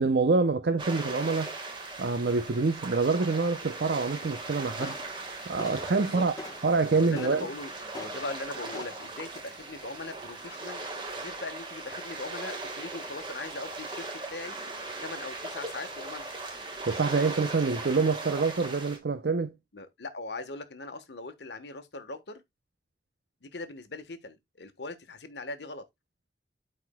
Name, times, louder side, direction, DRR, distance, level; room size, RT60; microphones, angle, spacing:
voice 1, 0.0-1.5 2.0-5.0 5.5-6.3 6.6-7.5 16.9-19.5, right 4 dB, 70° right, 0.6 m, -26 dB
sound 1, 0.8-19.0, right 2 dB, 25° right, 1.5 m, -39 dB
sound 2, 4.2-9.3, left 2 dB, 20° left, 1.0 m, -46 dB
voice 2, 6.8-14.0 14.3-14.6 15.0-16.3 19.7-22.4 23.4-25.8, left 2 dB, 80° left, 1.2 m, -40 dB
12.5 x 4.3 x 2.2 m
head